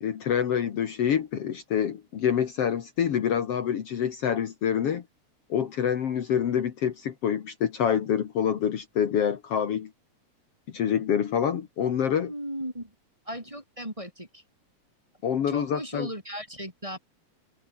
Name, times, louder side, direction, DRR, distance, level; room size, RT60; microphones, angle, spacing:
voice 1, 0.0-5.0 5.5-9.9 10.7-12.3 15.2-16.1, left 8 dB, 60° left, 2.4 m, -26 dB
voice 2, 12.1-12.9 13.3-14.4 15.5-17.0, equal, 10° right, 3.9 m, -36 dB
omnidirectional pair, 3.3 m